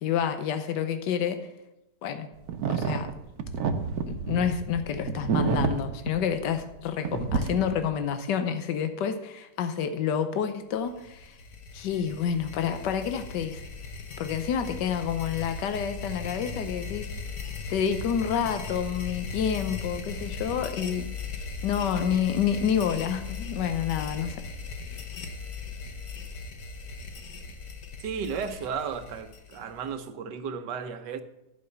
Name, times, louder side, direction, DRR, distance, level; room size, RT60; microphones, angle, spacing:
voice 1, 0.0-1.4 2.0-2.3 2.7-3.1 4.1-11.3 11.7-13.6 14.2-17.1 17.7-21.1 21.6-24.4, left 8 dB, 85° left, 1.4 m, -28 dB
sound 1, 2.5-6.8 7.1-7.9, right 5 dB, 65° right, 1.2 m, -29 dB
sound 2, 10.9-29.9, left 5 dB, 65° left, 1.6 m, -38 dB
voice 2, 28.0-31.2, right 6 dB, 85° right, 1.5 m, -34 dB
11.0 x 5.5 x 6.9 m
omnidirectional pair, 1.8 m